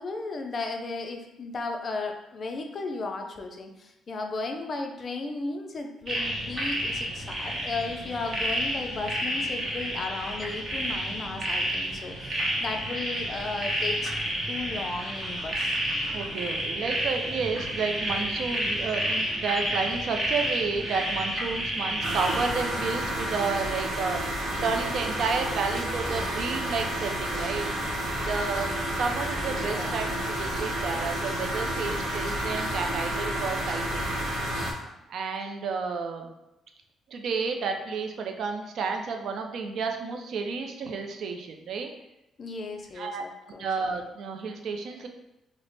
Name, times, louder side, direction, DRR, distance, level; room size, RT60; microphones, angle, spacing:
voice 1, 0.0-14.1 14.5-15.8 29.5-30.0 42.4-43.7, left 3 dB, 40° left, 4 dB, 0.4 m, -35 dB
sound 1, 6.1-22.5, right 1 dB, 35° right, 0.8 m, -30 dB
voice 2, 16.1-24.2 24.6-27.7 28.3-34.0 35.1-36.3 37.1-41.9 43.0-43.2 43.6-45.1, right 5 dB, 65° right, 4 dB, 0.4 m, -31 dB
sound 2, 22.0-34.7, right 1 dB, 80° right, 0.9 m, -30 dB
3.3 x 2.0 x 3.9 m, 0.91 s
cardioid pair, 130°, 0 cm